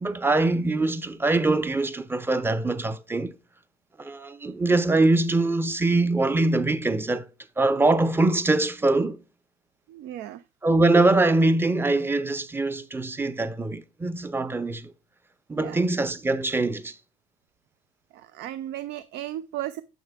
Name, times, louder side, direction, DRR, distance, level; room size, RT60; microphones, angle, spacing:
voice 1, 0.0-3.3 4.0-7.3 7.6-9.2 10.6-14.9 15.5-17.0, right 2 dB, 15° right, 0.6 m, -23 dB
voice 2, 9.9-10.4 15.6-15.8 18.1-19.8, right 13 dB, 85° right, 0.4 m, -35 dB
9.0 x 6.6 x 2.3 m
cardioid pair, 110°, 17 cm